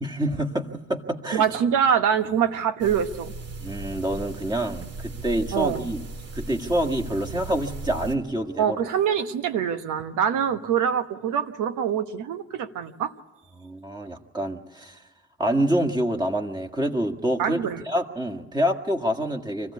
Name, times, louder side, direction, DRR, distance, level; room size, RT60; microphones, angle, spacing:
voice 1, 0.0-1.4 3.6-6.0 6.3-8.8 13.6-15.0 15.4-19.7, right 1 dB, 15° right, 2 dB, 1.7 m, -27 dB
voice 2, 1.3-3.3 4.8-4.9 5.5-5.8 8.6-13.1 17.4-17.8, right 8 dB, 85° right, 10 dB, 1.2 m, -24 dB
sound 1, 2.8-8.1, right 3 dB, 55° right, 2.1 m, -37 dB
25.0 x 15.0 x 8.4 m, 1.2 s
cardioid pair, 90°, 30 cm